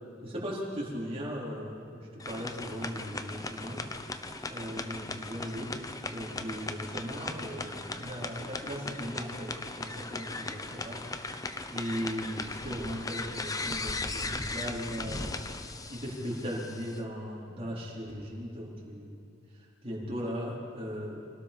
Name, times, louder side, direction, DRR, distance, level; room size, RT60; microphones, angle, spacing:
voice 1, 0.2-3.8 4.1-5.8 6.1-11.0 11.7-15.3 15.9-19.2 19.8-21.2, equal, 30° right, -5 dB, 4.3 m, -38 dB
sound 1, 2.2-17.0, left 3 dB, 20° left, 0.9 m, -38 dB
26.5 x 18.5 x 5.4 m, 2.6 s
head